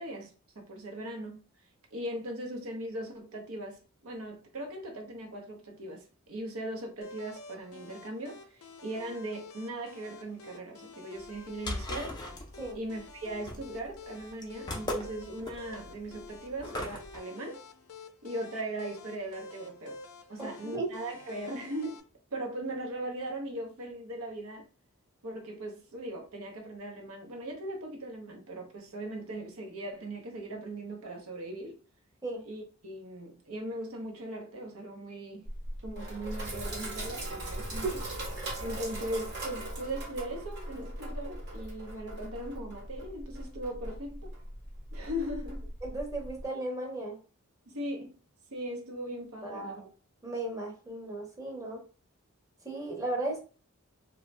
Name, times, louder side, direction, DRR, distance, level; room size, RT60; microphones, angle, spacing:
voice 1, 0.0-1.4 1.9-12.2 12.7-17.6 18.2-20.0 20.3-22.0 22.3-24.7 25.2-31.8 32.4-35.4 35.8-37.9 38.6-44.3 44.9-45.7 47.7-48.2 48.5-49.8, right 1 dB, 85° right, 0.8 m, -39 dB
sound 1, 7.0-22.0, left 4 dB, 80° left, 0.5 m, -49 dB
sound 2, 11.2-17.2, left 1 dB, 20° left, 0.4 m, -39 dB
voice 2, 20.4-20.9 32.2-32.4 37.8-38.0 45.8-47.2 49.4-49.9 50.2-51.8 52.6-53.4, right 2 dB, 15° right, 0.7 m, -35 dB
Sink (filling or washing), 35.5-46.5, right 1 dB, 50° right, 1.1 m, -39 dB
2.5 x 2.2 x 3.1 m
head